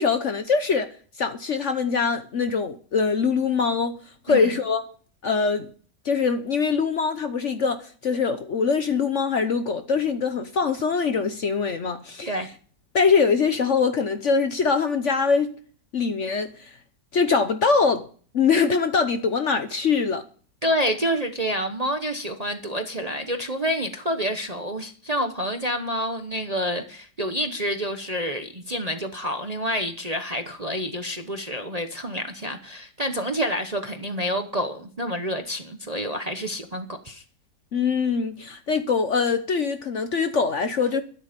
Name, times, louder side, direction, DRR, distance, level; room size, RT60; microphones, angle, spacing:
voice 1, 0.0-4.0 4.3-4.8 5.2-5.7 6.0-12.3 12.9-15.6 15.9-16.7 17.1-18.1 18.3-20.2 37.7-41.0, left 5 dB, 50° left, 1.0 m, -23 dB
voice 2, 20.6-37.2, equal, 30° right, 0.9 m, -28 dB
12.5 x 10.5 x 5.2 m
omnidirectional pair, 1.9 m